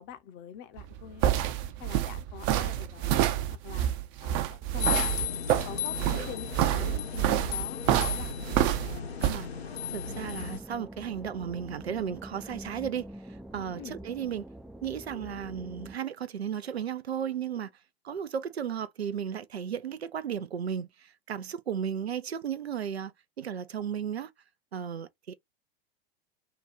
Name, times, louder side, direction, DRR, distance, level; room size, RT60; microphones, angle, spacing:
voice 1, 0.0-1.5 1.8-3.2 3.5-3.9 4.2-8.6 13.8-14.0, left 8 dB, 35° left, 0.8 m, -45 dB
sound 1, 0.8-9.4, right 12 dB, 40° right, 0.6 m, -27 dB
sound 2, 4.8-10.6, left 8 dB, 80° left, 0.9 m, -35 dB
voice 2, 9.9-14.5 14.8-17.7 18.0-23.1 23.4-24.3 24.7-25.3, right 8 dB, 90° right, 0.5 m, -34 dB
sound 3, 10.0-15.9, right 1 dB, ahead, 0.3 m, -45 dB
2.8 x 2.3 x 4.2 m
hypercardioid pair, 100°, 31 cm